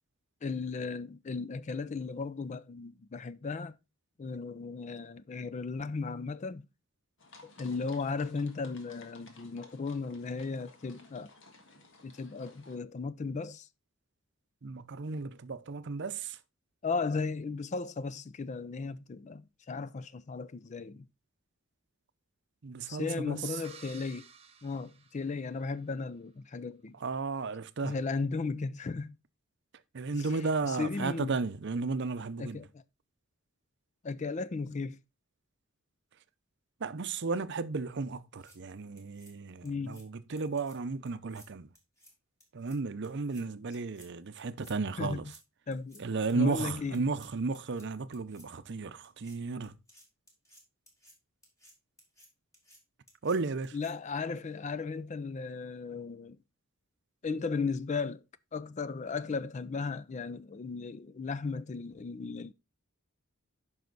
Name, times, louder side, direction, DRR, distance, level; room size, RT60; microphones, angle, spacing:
voice 1, 0.4-3.8 4.2-6.7 7.4-11.3 12.0-13.7 16.8-21.1 22.9-24.3 24.6-27.0 27.8-29.2 30.1-30.3 30.6-31.4 32.4-32.8 34.0-35.0 39.6-40.0 45.0-45.3 45.7-46.0 46.3-47.0 53.7-56.4 57.2-58.2 58.5-62.5, left 4 dB, 35° left, 0.4 m, -36 dB
sound 1, 7.2-12.8, left 3 dB, 60° left, 1.6 m, -56 dB
voice 2, 14.6-16.4 22.6-23.4 27.0-28.0 29.9-32.7 36.8-41.7 42.5-45.3 46.0-49.8 53.2-53.8, right 4 dB, 55° right, 0.6 m, -34 dB
sound 2, 23.6-25.9, right 6 dB, 30° right, 0.9 m, -54 dB
sound 3, 38.2-38.6 39.0-39.3 39.6-40.0 40.4-40.8 41.1-41.5 41.7-42.1 42.4-42.8 43.0-43.4 43.7-44.1 44.4-44.7 45.0-45.4 45.7-46.0 46.3-46.6 46.9-47.3 47.5-47.9 48.1-48.5 49.0-49.4 49.6-51.1 51.4-51.7 52.0-52.3 52.5-52.8 53.1-53.4 53.6-53.9, equal, 15° left, 3.0 m, -58 dB
9.4 x 5.6 x 3.9 m
head